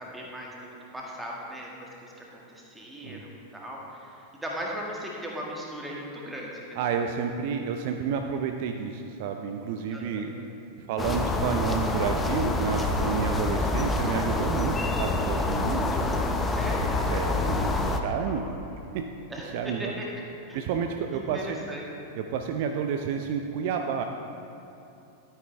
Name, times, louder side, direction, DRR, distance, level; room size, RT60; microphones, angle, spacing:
voice 1, 0.0-6.8 9.9-10.5 15.7-17.0 18.3-18.6 19.3-20.1 20.5-20.7 21.1-21.8, equal, 10° right, -2 dB, 1.8 m, -39 dB
voice 2, 6.8-10.3 10.8-15.9 17.1-18.4 18.9-19.1 19.4-19.9 20.5-21.6 22.2-24.0, right 6 dB, 50° right, 5 dB, 0.5 m, -30 dB
sound 1, 11.0-18.0, left 2 dB, 15° left, 0.7 m, -27 dB
12.5 x 9.2 x 3.4 m, 2.8 s
figure-of-eight pair, 90°, 0 cm